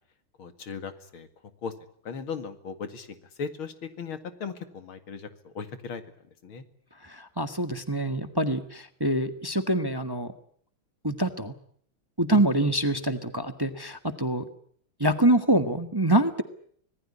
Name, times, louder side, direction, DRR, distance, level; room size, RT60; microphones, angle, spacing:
voice 1, 0.4-1.3 1.6-1.7 2.0-6.0 6.4-6.6 12.3-12.4, left 5 dB, 90° left, 10 dB, 2.9 m, -37 dB
voice 2, 7.1-10.3 11.0-11.5 12.2-14.4 15.0-16.4, right 1 dB, 15° right, 9 dB, 1.2 m, -25 dB
25.5 x 19.5 x 9.8 m, 0.63 s
omnidirectional pair, 2.2 m